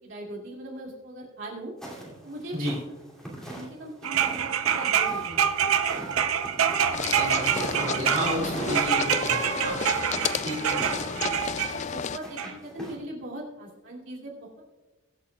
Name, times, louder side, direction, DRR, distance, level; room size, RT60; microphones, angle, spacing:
voice 1, 0.0-1.7 2.2-2.6 3.5-5.5 8.4-8.6 10.8-11.4 11.7-14.6, right 1 dB, 60° right, -4 dB, 2.7 m, -40 dB
sound 1, 1.8-12.9, right 1 dB, 5° left, 2.6 m, -42 dB
sound 2, 4.0-11.7 12.4-12.5, right 8 dB, 80° right, 0.7 m, -26 dB
sound 3, 6.9-12.2, left 7 dB, 35° left, 0.3 m, -32 dB
voice 2, 7.1-9.8 10.4-10.8, right 1 dB, 40° right, -5 dB, 2.5 m, -31 dB
23.0 x 8.3 x 2.4 m, 1.2 s
head